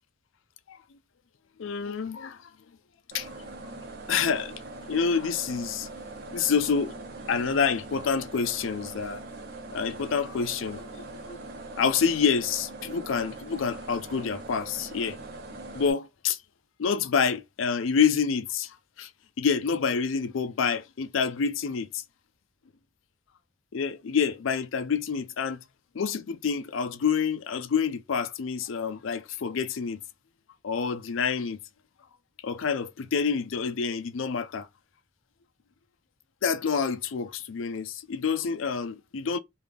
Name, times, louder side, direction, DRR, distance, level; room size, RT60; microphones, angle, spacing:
voice 1, 1.6-2.4 3.1-3.3 4.1-4.6 4.9-5.9 6.3-6.9 7.3-9.2 9.7-11.4 11.7-15.2 15.7-16.4 16.8-19.1 19.4-22.0 23.7-25.6 25.9-30.0 30.6-31.6 32.4-34.7 36.4-39.4, left 6 dB, 80° left, 0.4 m, -27 dB
sound 1, 3.1-15.9, right 2 dB, 55° right, 0.8 m, -42 dB
3.3 x 2.3 x 3.4 m
head